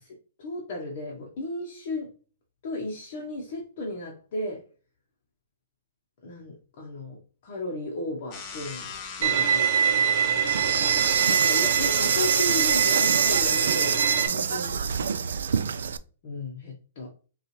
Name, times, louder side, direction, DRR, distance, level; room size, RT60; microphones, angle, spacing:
voice 1, 0.0-2.1 2.6-4.6 6.2-8.9 9.2-10.8 11.3-14.8 16.2-17.1, left 2 dB, 40° left, -2 dB, 0.9 m, -35 dB
sound 1, 8.3-14.0, left 5 dB, 20° left, 0.5 m, -40 dB
Bowed string instrument, 9.2-14.3, right 8 dB, 55° right, 0.7 m, -24 dB
Insect, 10.5-16.0, right 7 dB, 90° right, 0.3 m, -25 dB
5.5 x 2.4 x 3.1 m, 0.38 s
hypercardioid pair, 175°, 0 cm